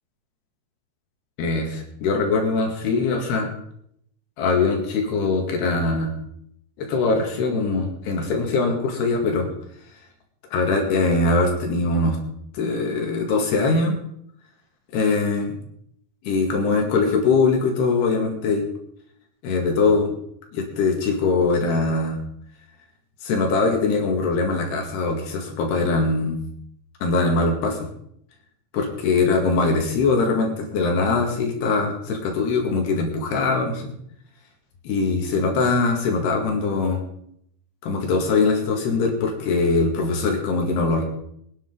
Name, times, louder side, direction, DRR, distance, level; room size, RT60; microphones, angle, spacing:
voice 1, 1.4-3.5 4.4-6.1 6.8-9.5 10.5-12.2 12.5-14.0 14.9-15.5 16.2-18.6 19.4-20.1 20.5-22.2 23.2-26.4 27.0-27.9 28.7-33.9 34.9-37.0 37.8-41.0, left 3 dB, 80° left, 2 dB, 4.1 m, -22 dB
23.5 x 10.5 x 3.8 m, 0.71 s
omnidirectional pair, 4.7 m